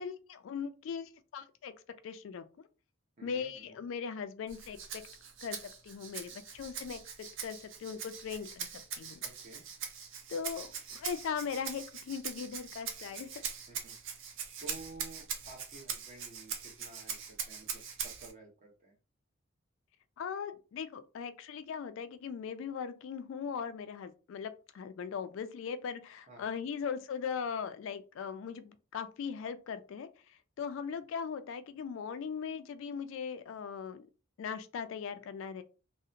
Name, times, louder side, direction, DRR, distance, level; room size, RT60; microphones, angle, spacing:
voice 1, 0.0-1.7 2.0-2.4 3.2-5.0 5.4-5.6 5.8-8.7 9.0-9.2 10.3-13.3 20.2-34.1 34.4-35.6, left 6 dB, 65° left, 11 dB, 0.3 m, -39 dB
voice 2, 3.2-3.8 9.2-9.6 13.7-14.2 14.6-18.9 26.3-26.4, right 2 dB, 35° right, -1 dB, 0.9 m, -52 dB
Rattle (instrument), 4.5-18.3, right 7 dB, 65° right, 0.5 m, -42 dB
2.8 x 2.0 x 2.5 m, 0.33 s
head